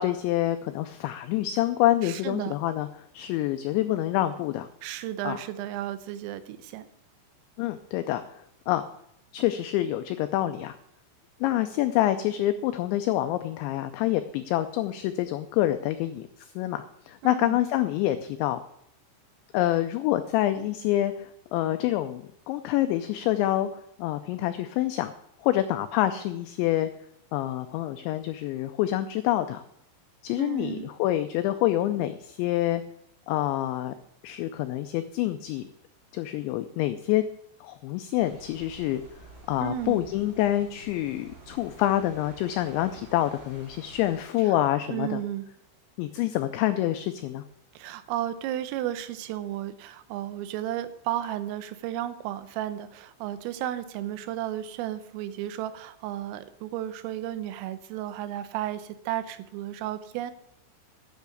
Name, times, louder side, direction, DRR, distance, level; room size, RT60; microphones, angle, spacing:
voice 1, 0.0-2.9 3.1-4.7 5.2-5.4 7.6-8.2 8.7-8.8 9.3-10.8 11.4-18.6 19.5-23.7 24.0-25.1 25.4-26.9 27.3-29.6 30.2-32.8 33.3-33.9 34.2-35.6 36.1-37.2 37.6-39.0 39.5-45.2 46.0-47.4, left 14 dB, 85° left, 9 dB, 2.6 m, -27 dB
voice 2, 2.0-2.5 4.8-6.9 17.2-17.6 30.4-30.9 39.6-40.0 44.4-44.6 44.9-45.5 47.8-60.3, right 12 dB, 85° right, 12 dB, 3.4 m, -33 dB
sound 1, 38.2-44.2, right 1 dB, 30° right, 3.2 m, -50 dB
10.5 x 6.5 x 8.2 m, 0.73 s
omnidirectional pair, 5.8 m